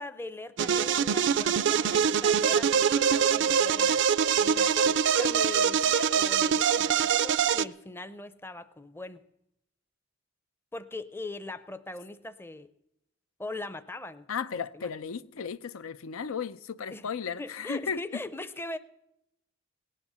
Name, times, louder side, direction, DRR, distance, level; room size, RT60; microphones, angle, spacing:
voice 1, 0.0-4.0 4.4-9.2 10.7-12.7 13.4-14.3 14.5-14.9 16.9-17.1 17.3-18.8, left 2 dB, 10° left, 0.6 m, -40 dB
sound 1, 0.6-7.7, right 7 dB, 60° right, 0.4 m, -24 dB
voice 2, 14.3-18.2, left 6 dB, 85° left, 0.6 m, -35 dB
18.0 x 10.0 x 6.8 m
head